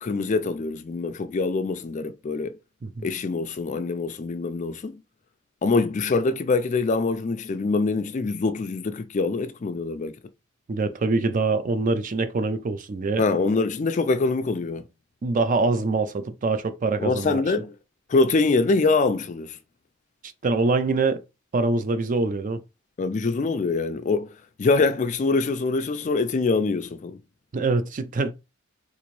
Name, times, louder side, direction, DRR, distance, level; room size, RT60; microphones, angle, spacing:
voice 1, 0.0-2.5 3.0-5.0 5.6-10.1 13.2-14.8 17.0-17.7 18.1-19.6 23.0-24.3 24.6-27.2, left 3 dB, 35° left, 0.3 m, -24 dB
voice 2, 10.7-13.2 15.2-17.4 20.4-21.2 21.5-22.6 27.5-28.3, right 3 dB, 40° right, 0.4 m, -24 dB
3.8 x 2.5 x 3.0 m
head